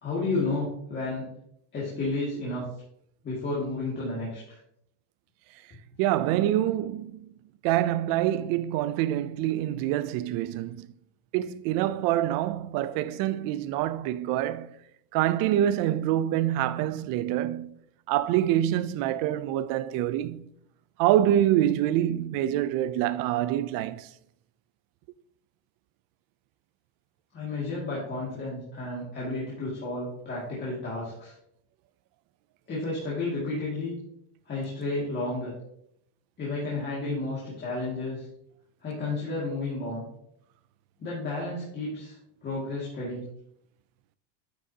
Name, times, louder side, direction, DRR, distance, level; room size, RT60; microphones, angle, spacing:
voice 1, 0.0-1.3 1.7-2.6 3.2-4.6 27.3-31.3 32.7-34.0 34.5-35.5 36.4-38.3 38.8-40.1 41.0-43.2, left 2 dB, 25° left, 2.1 m, -32 dB
voice 2, 6.0-7.3 7.6-10.9 11.3-14.8 15.1-17.8 18.1-20.5 21.0-24.1, right 12 dB, 50° right, 0.5 m, -26 dB
9.5 x 6.3 x 2.8 m
cardioid pair, 155°, 45 cm